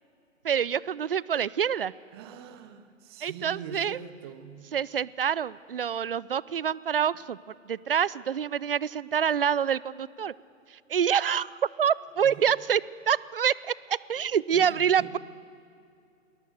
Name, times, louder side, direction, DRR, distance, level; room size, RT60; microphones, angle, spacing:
voice 1, 0.4-1.9 3.2-4.0 4.7-10.3 10.7-11.5 11.8-12.8 13.1-15.2, right 8 dB, 45° right, 21 dB, 0.4 m, -26 dB
voice 2, 2.1-4.6 12.2-12.5 14.2-15.1, right 7 dB, 20° right, 11 dB, 0.8 m, -43 dB
20.5 x 18.0 x 7.9 m, 2.5 s
figure-of-eight pair, 135°, 39 cm